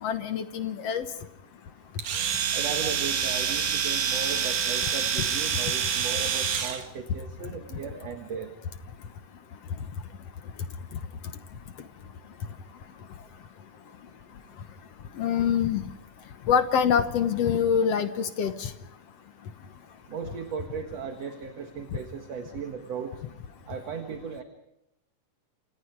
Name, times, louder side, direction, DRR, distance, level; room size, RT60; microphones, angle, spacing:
voice 1, 0.0-1.1 15.2-15.9 16.5-18.7, left 7 dB, 60° left, 9 dB, 1.8 m, -25 dB
Domestic sounds home sounds, 2.0-6.8, right 7 dB, 85° right, 3.8 m, -27 dB
voice 2, 2.5-8.5 20.1-23.2 23.7-24.4, right 6 dB, 55° right, 5 dB, 2.6 m, -36 dB
28.5 x 28.0 x 4.8 m, 0.81 s
omnidirectional pair, 3.8 m